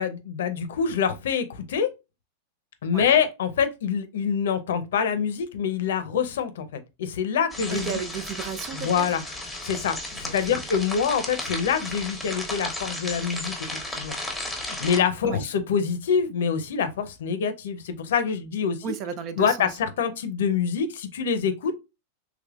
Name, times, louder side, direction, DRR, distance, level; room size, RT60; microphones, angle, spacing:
voice 1, 0.0-1.9 2.8-8.0 8.8-9.2 9.6-14.1 14.6-18.9 19.4-21.7, left 7 dB, 80° left, 0.6 m, -26 dB
sound 1, 7.5-15.0, left 1 dB, ahead, 1.1 m, -34 dB
voice 2, 7.7-9.2 10.3-10.6 15.2-15.5 18.8-19.7, right 7 dB, 45° right, 0.5 m, -34 dB
3.4 x 3.1 x 2.4 m
hypercardioid pair, 120°, 0 cm